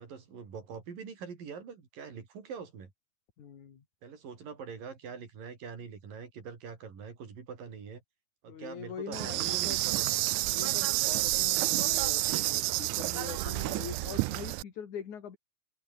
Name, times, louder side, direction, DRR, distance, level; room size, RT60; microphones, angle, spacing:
voice 1, 0.0-2.9 4.0-8.0 8.4-10.3, right 6 dB, 70° right, 6.1 m, -44 dB
voice 2, 3.4-3.8 8.5-9.8 10.5-15.4, left 8 dB, 55° left, 4.0 m, -43 dB
Insect, 9.1-14.6, right 21 dB, 85° right, 1.8 m, -29 dB
open air
omnidirectional pair, 4.1 m